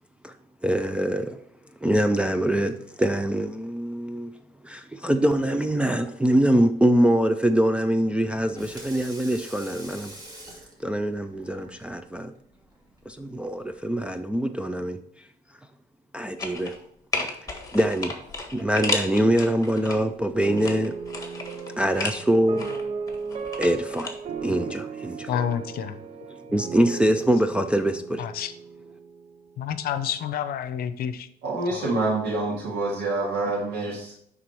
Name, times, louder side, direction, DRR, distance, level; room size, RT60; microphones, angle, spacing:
voice 1, 0.6-1.4 1.8-4.3 4.6-10.1 10.8-12.3 13.1-15.0 16.1-16.7 17.7-18.1 18.5-21.0 21.8-22.6 23.6-24.1 24.4-25.4 26.5-28.2, right 1 dB, 5° right, 0.4 m, -24 dB
Water tap faucet / Sink (filling or washing), 8.5-13.8, right 1 dB, 20° right, 2.2 m, -46 dB
sound 1, 16.4-16.8 17.1-20.0 20.4-22.2 22.6-24.1 24.4-24.5, left 3 dB, 20° left, 1.6 m, -32 dB
sound 2, 20.5-29.6, right 5 dB, 40° right, 0.7 m, -36 dB
voice 2, 25.3-26.0 28.2-28.5 29.6-31.3 31.7-31.9, left 9 dB, 65° left, 0.7 m, -29 dB
voice 3, 31.4-34.1, right 2 dB, 80° right, 2.1 m, -27 dB
9.4 x 4.0 x 4.5 m
cardioid pair, 110°, 17 cm